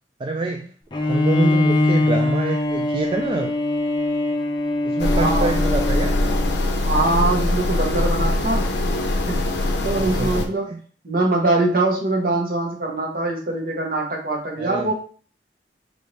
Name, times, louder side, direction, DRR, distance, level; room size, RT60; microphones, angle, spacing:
voice 1, 0.2-0.7 1.0-3.5 4.8-6.4 9.8-10.8 14.6-14.9, right 3 dB, 30° right, 2 dB, 0.3 m, -27 dB
Bowed string instrument, 0.9-6.6, left 2 dB, 25° left, 0.5 m, -22 dB
voice 2, 1.3-1.6 5.1-5.5 6.8-8.7 9.3-9.4 9.8-10.7 11.0-14.9, right 2 dB, 55° right, 0 dB, 1.0 m, -23 dB
sound 1, 5.0-10.5, left 1 dB, 75° left, 0.6 m, -22 dB
4.3 x 2.7 x 3.2 m, 0.42 s
head